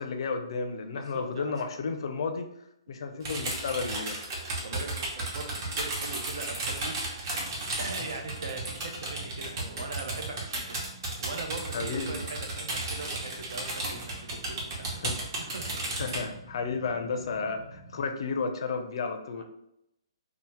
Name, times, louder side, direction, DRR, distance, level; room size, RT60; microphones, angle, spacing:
voice 1, 0.0-2.5 2.9-4.2 11.7-12.2 15.0-15.2 16.0-19.4, left 4 dB, 65° left, 6 dB, 0.4 m, -32 dB
voice 2, 0.9-1.5 4.6-7.5 7.8-10.8 11.2-15.0 15.4-15.6 19.3-19.4, right 3 dB, 75° right, 4 dB, 0.6 m, -41 dB
sound 1, 3.2-16.2, right 2 dB, 45° right, 0.9 m, -34 dB
sound 2, 7.3-18.0, right 2 dB, 10° right, 0.7 m, -50 dB
2.8 x 2.0 x 3.1 m, 0.81 s
hypercardioid pair, 150°, 3 cm